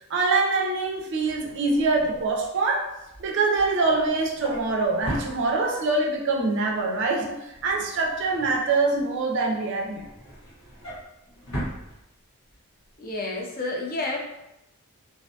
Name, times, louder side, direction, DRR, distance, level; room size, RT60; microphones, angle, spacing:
voice 1, 0.1-2.9 3.2-10.1, right 3 dB, 55° right, 1 dB, 0.4 m, -24 dB
Drawer open or close, 1.0-6.0 6.4-6.7 7.0-9.2 9.6-12.6 12.9-13.1 13.4-13.5, equal, 65° left, 1.1 m, -39 dB
voice 2, 13.0-14.2, left 2 dB, 40° left, -1 dB, 0.4 m, -30 dB
2.5 x 2.2 x 2.6 m, 0.90 s
head